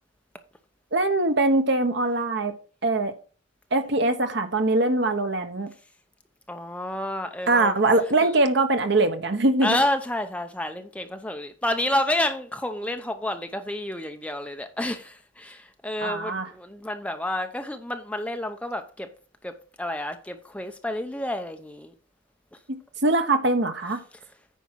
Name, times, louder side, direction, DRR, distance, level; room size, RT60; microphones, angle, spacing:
voice 1, 0.9-2.5 2.8-3.1 3.7-5.7 7.5-9.8 16.0-16.5 22.7-24.0, right 2 dB, 55° right, 1.2 m, -22 dB
voice 2, 6.5-7.7 9.6-19.1 19.4-21.9, left 1 dB, 5° left, 0.7 m, -29 dB
9.2 x 5.4 x 4.7 m
head